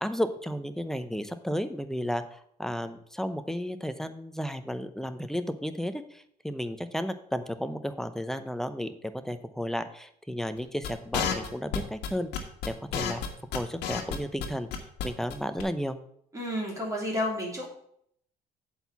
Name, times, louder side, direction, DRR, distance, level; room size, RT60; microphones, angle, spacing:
voice 1, 0.0-8.9 9.2-13.2 13.5-14.7 15.0-16.0, equal, ahead, 10 dB, 0.7 m, -33 dB
sound 1, 10.8-15.1 15.3-15.4 15.6-15.7, left 7 dB, 90° left, 1.4 m, -30 dB
voice 2, 16.3-17.7, left 1 dB, 20° right, -3 dB, 3.1 m, -31 dB
7.8 x 4.6 x 7.0 m, 0.69 s
cardioid pair, 110°, 17 cm